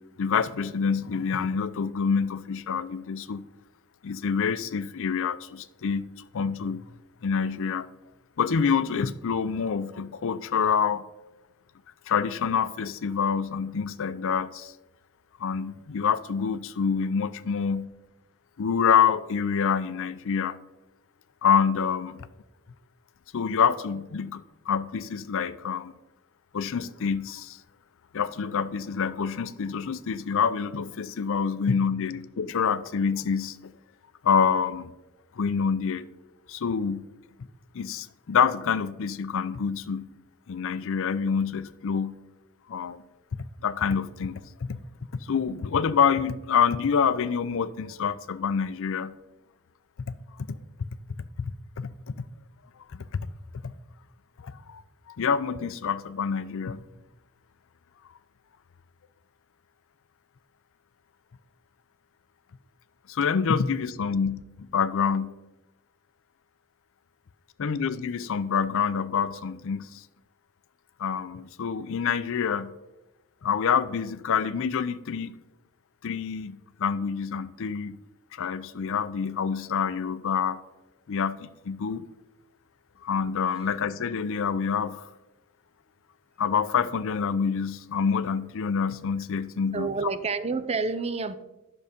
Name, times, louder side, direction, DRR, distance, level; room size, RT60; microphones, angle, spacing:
voice 1, 0.2-3.4 4.0-6.0 6.3-6.8 7.2-7.9 8.4-11.0 12.1-14.7 15.4-17.9 18.6-20.6 21.4-22.3 23.3-25.9 26.5-27.6 28.1-33.7 34.2-34.9 35.4-36.1 36.5-37.1 37.7-40.1 40.5-42.2 42.7-43.0 43.6-44.8 45.2-49.1 50.5-50.6 51.8-51.9 52.9-53.2 53.6-53.7 54.4-54.8 55.1-56.8 63.1-65.4 67.6-70.0 71.0-72.7 73.4-75.3 76.0-78.0 78.3-80.6 81.1-82.1 83.0-85.1 86.4-89.9, left 6 dB, 65° left, 0.5 m, -27 dB
voice 2, 89.7-91.3, right 4 dB, 30° right, 0.5 m, -28 dB
11.0 x 6.6 x 5.1 m
head